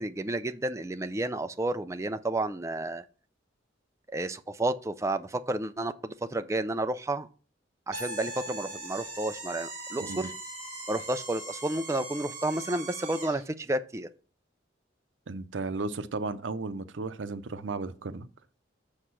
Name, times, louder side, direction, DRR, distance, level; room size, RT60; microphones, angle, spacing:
voice 1, 0.0-3.0 4.1-7.3 7.9-10.3 10.9-14.1, right 2 dB, 15° right, 0.4 m, -31 dB
sound 1, 7.9-13.5, right 2 dB, 40° right, 3.0 m, -40 dB
voice 2, 15.3-18.3, right 3 dB, 85° right, 0.6 m, -34 dB
6.5 x 5.0 x 5.8 m
head